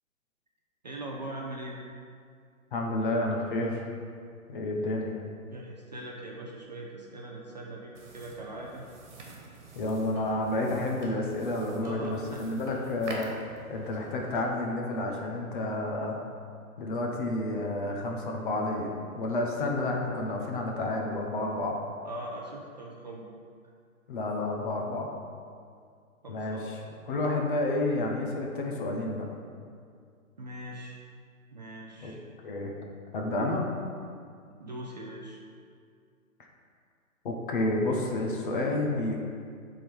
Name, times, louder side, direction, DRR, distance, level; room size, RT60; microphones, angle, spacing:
voice 1, 0.8-1.8 4.7-4.8 5.5-8.9 11.8-12.4 22.0-23.3 26.2-26.8 30.4-31.0 31.5-32.2 34.5-35.4, right 1 dB, 30° right, -2 dB, 0.5 m, -41 dB
voice 2, 2.7-3.8 4.5-5.2 9.8-13.3 13.7-16.2 16.8-21.8 24.1-25.1 26.3-26.8 27.1-29.3 32.0-32.1 32.4-32.7 33.1-33.7 37.2-39.2, left 2 dB, 35° left, 1 dB, 0.9 m, -30 dB
sound 1, 7.9-14.3, right 3 dB, 55° right, 1.5 m, -47 dB
7.4 x 3.8 x 5.2 m, 2.2 s
hypercardioid pair, 155°, 42 cm